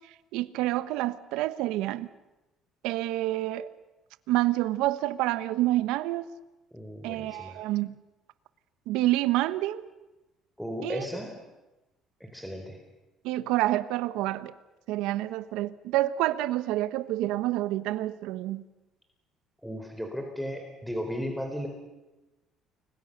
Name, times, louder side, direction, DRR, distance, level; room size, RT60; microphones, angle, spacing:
voice 1, 0.3-2.1 2.8-3.7 4.3-6.3 7.0-8.0 8.9-9.8 10.8-11.0 13.2-14.5 14.9-18.6, right 16 dB, 85° right, 1.2 m, -28 dB
voice 2, 6.7-7.6 10.6-11.4 12.2-12.8 19.6-21.7, equal, ahead, 4.1 m, -35 dB
30.0 x 22.5 x 6.8 m
cardioid pair, 105°, 0 cm